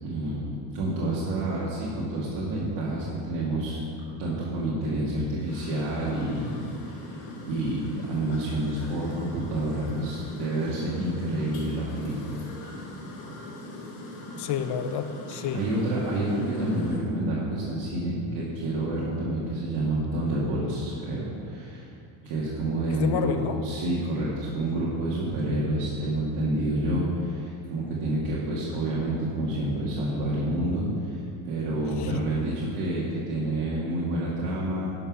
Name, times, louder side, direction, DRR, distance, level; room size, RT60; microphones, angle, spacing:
voice 1, 0.0-3.8 4.2-12.4 15.5-21.9 22.2-31.2 31.4-34.9, right 1 dB, 80° right, -7 dB, 2.0 m, -28 dB
sound 1, 5.5-17.0, left 1 dB, 85° left, 2.4 m, -41 dB
voice 2, 14.4-15.6 22.9-23.6 32.0-32.2, left 8 dB, 55° left, 9 dB, 0.8 m, -30 dB
11.0 x 5.9 x 6.0 m, 2.5 s
cardioid pair, 110°, 50 cm